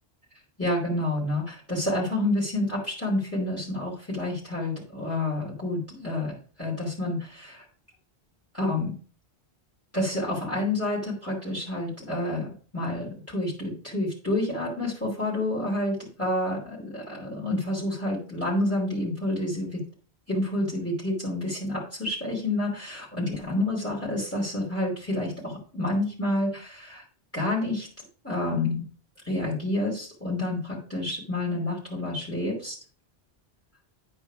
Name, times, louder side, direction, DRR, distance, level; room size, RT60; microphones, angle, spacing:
voice 1, 0.6-7.6 8.5-8.9 9.9-12.5 12.7-19.8 20.3-27.0 27.3-27.9 28.2-28.9 29.2-32.8, left 1 dB, 15° left, -4 dB, 2.8 m, -29 dB
10.0 x 4.5 x 4.8 m, 0.40 s
omnidirectional pair, 1.1 m